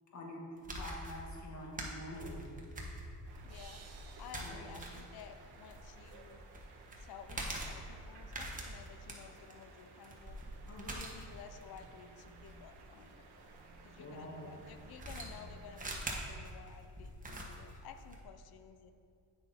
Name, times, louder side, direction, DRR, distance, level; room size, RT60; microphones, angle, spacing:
voice 1, 0.1-0.4 0.7-2.4 4.3-4.6 10.7-11.0 14.0-14.5, left 1 dB, 45° left, -2 dB, 1.7 m, -46 dB
sound 1, 0.6-13.7 14.6-18.2, right 1 dB, 20° right, 1.2 m, -45 dB
sound 2, 3.3-15.9, right 3 dB, 85° right, 1.1 m, -58 dB
voice 2, 3.4-3.8 4.2-6.4 7.0-10.4 10.9-18.9, left 7 dB, 70° left, 9 dB, 0.6 m, -54 dB
sound 3, 3.5-6.6, right 5 dB, 40° right, 1.0 m, -61 dB
8.9 x 6.3 x 4.2 m, 2.5 s
cardioid pair, 120°, 39 cm